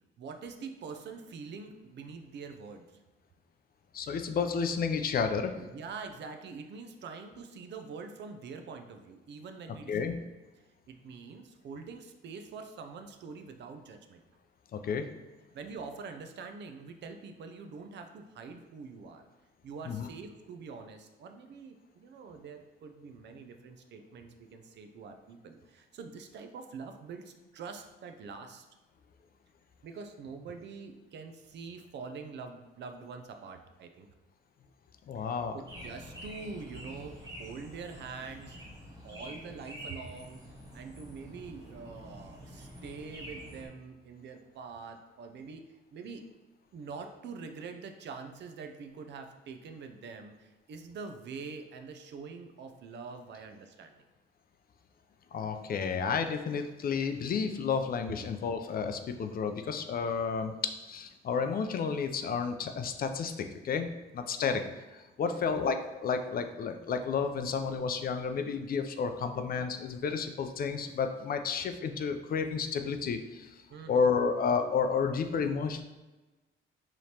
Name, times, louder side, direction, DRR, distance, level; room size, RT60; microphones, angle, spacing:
voice 1, 0.2-2.9 5.6-10.1 10.9-14.2 15.5-19.2 19.6-28.7 29.8-34.1 35.1-35.3 35.5-38.6 39.0-40.4 40.7-45.6 45.9-46.2 46.7-54.0 64.4-64.8 65.2-65.6 73.7-74.1, right 5 dB, 60° right, 6 dB, 0.5 m, -45 dB
voice 2, 3.9-5.6 9.9-10.2 14.7-15.1 19.9-20.1 35.1-35.6 55.3-64.6 64.9-73.5 73.9-75.8, left 5 dB, 50° left, 7 dB, 0.4 m, -31 dB
sound 1, 35.7-43.7, equal, 20° right, 1.3 m, -47 dB
4.9 x 3.0 x 2.8 m, 1.1 s
cardioid pair, 90°, 20 cm